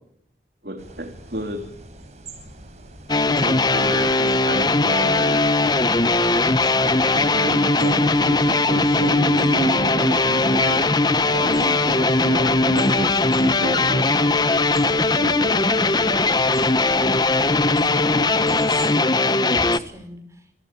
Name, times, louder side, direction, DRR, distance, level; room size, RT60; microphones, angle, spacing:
voice 1, 0.6-1.6 3.4-5.4 7.1-10.9 11.3-14.1 15.0-15.6, right 1 dB, 55° right, 5 dB, 3.2 m, -31 dB
sound 1, 0.8-18.9, right 2 dB, 40° right, 5.8 m, -44 dB
sound 2, 3.1-19.8, left 2 dB, 25° left, 1.0 m, -19 dB
voice 2, 17.9-20.5, right 1 dB, 15° right, 7 dB, 5.7 m, -40 dB
29.0 x 23.0 x 8.5 m, 0.75 s
head